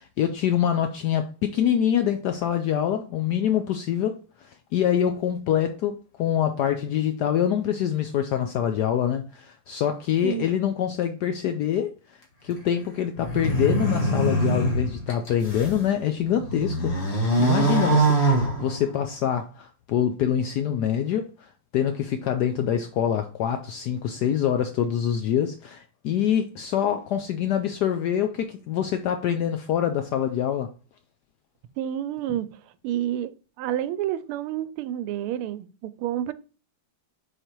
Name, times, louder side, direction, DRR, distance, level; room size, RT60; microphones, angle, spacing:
voice 1, 0.0-11.9 12.4-21.3 21.7-30.7, left 9 dB, 85° left, 0.9 m, -25 dB
sound 1, 13.2-15.8 16.3-19.1, right 2 dB, 30° left, 1.8 m, -23 dB
voice 2, 31.8-32.5 32.8-36.3, right 11 dB, 85° right, 1.5 m, -29 dB
5.0 x 4.5 x 4.4 m
omnidirectional pair, 2.4 m